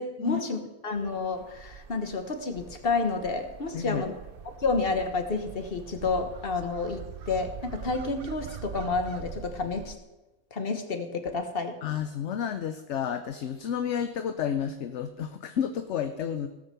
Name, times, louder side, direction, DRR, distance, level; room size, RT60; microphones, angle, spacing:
voice 1, 0.0-4.1 4.6-10.0 10.5-11.8, left 3 dB, 40° left, 6 dB, 1.5 m, -30 dB
sound 1, 0.9-10.0, right 8 dB, 55° right, 0.7 m, -44 dB
voice 2, 11.8-16.5, left 8 dB, 60° left, 9 dB, 0.9 m, -31 dB
17.0 x 6.6 x 6.9 m, 1.0 s
omnidirectional pair, 1.5 m